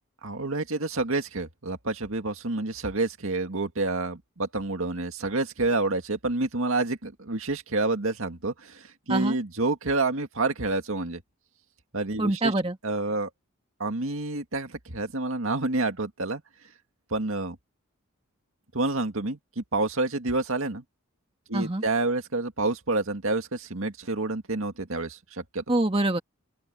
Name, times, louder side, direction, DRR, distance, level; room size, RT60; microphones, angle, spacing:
voice 1, 0.2-11.2 11.9-12.5 12.8-13.3 13.8-16.4 17.1-17.6 18.7-20.8 21.5-25.6, right 2 dB, 70° right, 2.1 m, -28 dB
voice 2, 12.2-12.8 21.5-21.8 25.7-26.2, right 2 dB, 25° right, 1.8 m, -24 dB
open air
head